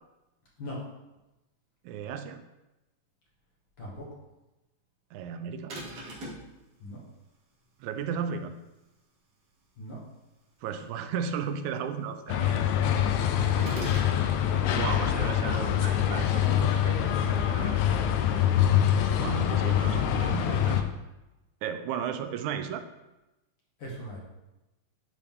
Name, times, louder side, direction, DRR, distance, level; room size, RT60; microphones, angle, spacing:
voice 1, 1.8-2.4 5.1-5.8 7.8-8.6 10.6-12.6 14.7-17.9 19.2-20.9 21.6-22.9, right 7 dB, 85° right, 9 dB, 2.0 m, -35 dB
voice 2, 3.8-4.1 6.8-7.0 9.8-10.0 13.3-13.7 14.0-14.4 23.8-24.2, equal, 50° left, -4 dB, 1.8 m, -40 dB
sound 1, 5.7-6.5 13.6-14.2, right 1 dB, 55° right, 2.4 m, -38 dB
sound 2, 12.3-20.8, left 10 dB, 80° left, 1.8 m, -25 dB
11.5 x 3.9 x 3.6 m, 1.0 s
omnidirectional pair, 3.3 m